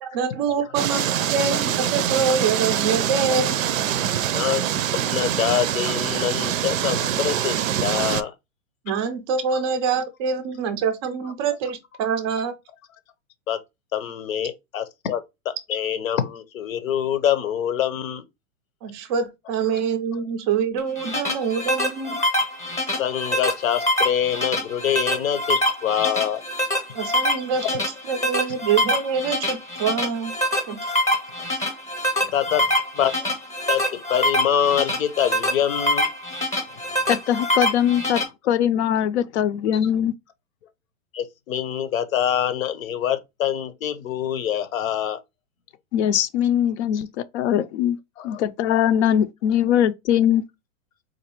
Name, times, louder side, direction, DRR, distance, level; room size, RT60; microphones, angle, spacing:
voice 1, 0.0-3.5 8.8-12.5 18.8-22.2 26.9-30.9, right 6 dB, 20° right, 0.3 m, -25 dB
sound 1, 0.7-8.2, right 10 dB, 85° right, 0.5 m, -24 dB
voice 2, 4.9-8.3 13.5-13.6 13.9-18.2 23.0-26.4 30.7-30.8 32.3-32.7 32.9-33.3 33.7-36.1 41.1-45.2 46.9-47.0 48.2-48.4, left 10 dB, 85° left, 0.8 m, -25 dB
sound 2, 20.8-38.2, equal, 10° left, 0.7 m, -25 dB
voice 3, 37.1-40.1 45.9-47.1 47.3-48.0 48.2-50.4, left 10 dB, 60° left, 0.5 m, -21 dB
4.0 x 2.6 x 2.9 m
hypercardioid pair, 145°, 39 cm